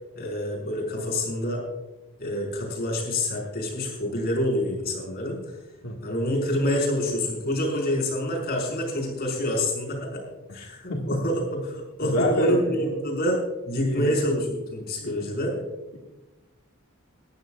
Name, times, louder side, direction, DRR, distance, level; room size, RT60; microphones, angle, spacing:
voice 1, 0.1-1.6 2.2-5.4 6.0-10.2 10.5-15.5, left 1 dB, 50° left, -1 dB, 5.2 m, -27 dB
voice 2, 10.5-11.1 12.0-12.8 13.8-14.1 15.0-15.2, left 1 dB, 85° left, -1 dB, 1.9 m, -28 dB
19.5 x 14.0 x 2.5 m, 1.1 s
head